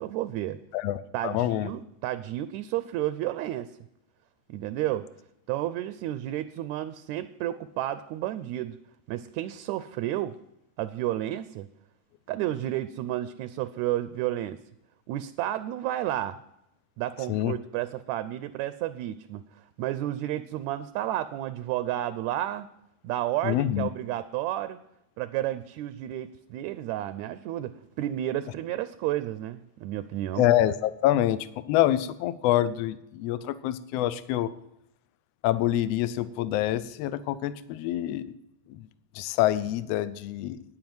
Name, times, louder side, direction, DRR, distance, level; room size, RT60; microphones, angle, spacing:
voice 1, 0.0-0.6 1.1-3.8 4.5-5.1 5.5-8.8 9.1-10.4 10.8-11.7 12.3-14.6 15.1-16.4 17.0-22.7 23.0-24.8 25.2-30.5, right 13 dB, 80° right, 13 dB, 1.7 m, -31 dB
voice 2, 0.7-1.7 17.3-17.5 23.4-23.9 30.3-34.5 35.4-38.3 38.7-38.9 39.1-40.6, left 13 dB, 85° left, 15 dB, 1.4 m, -26 dB
9.8 x 8.8 x 7.8 m, 0.82 s
omnidirectional pair, 3.6 m